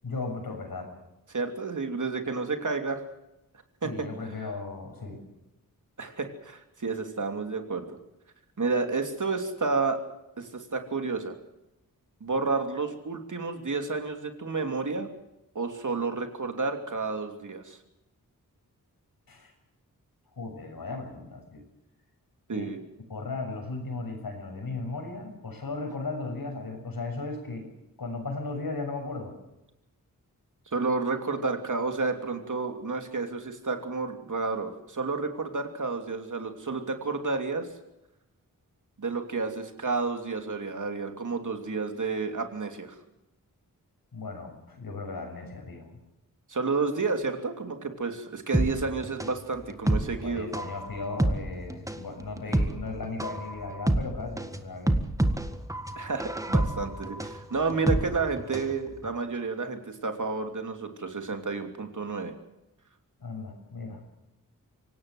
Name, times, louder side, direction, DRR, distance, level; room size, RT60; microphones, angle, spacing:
voice 1, 0.0-0.9 3.8-5.2 19.3-19.5 20.4-21.6 22.5-22.7 23.1-27.7 28.0-29.3 44.1-45.9 50.2-55.0 63.2-64.0, left 3 dB, 85° left, 4 dB, 6.9 m, -36 dB
voice 2, 1.3-3.0 3.8-3.9 6.0-7.9 8.6-10.0 10.4-11.3 12.2-15.1 15.5-17.8 22.5-22.8 30.7-37.7 39.0-42.9 46.5-50.5 56.0-62.3, right 4 dB, 60° right, 5 dB, 3.0 m, -30 dB
sound 1, 48.5-58.8 59.0-59.1, right 1 dB, 10° right, 1.6 m, -28 dB
25.0 x 17.5 x 7.8 m, 0.90 s
wide cardioid pair, 100°, 35 cm